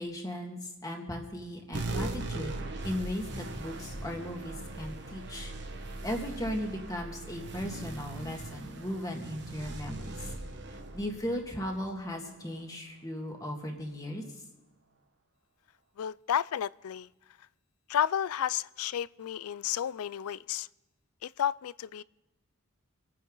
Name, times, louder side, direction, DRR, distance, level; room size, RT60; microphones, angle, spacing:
voice 1, 0.0-5.5 6.0-10.3 10.9-14.2, equal, 15° left, 1.9 m, -37 dB
sound 1, 1.7-12.6, right 2 dB, 55° right, 1.4 m, -40 dB
voice 2, 16.0-17.1 17.9-20.7 21.2-22.0, left 9 dB, 90° left, 0.4 m, -32 dB
25.5 x 9.5 x 3.9 m
head